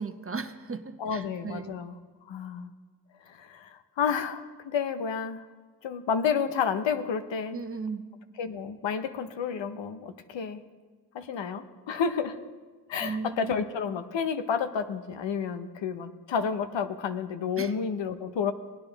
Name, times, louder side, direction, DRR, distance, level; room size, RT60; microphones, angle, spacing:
voice 1, 0.0-1.7 7.5-8.1 13.0-13.5 17.6-17.7, right 4 dB, 30° right, 9 dB, 0.8 m, -36 dB
voice 2, 1.0-1.9 2.2-2.7 3.3-5.4 5.8-7.6 8.4-10.6 11.1-12.4 12.9-18.5, left 6 dB, 85° left, 10 dB, 0.8 m, -30 dB
17.5 x 9.6 x 3.9 m, 1.4 s
cardioid pair, 50°, 43 cm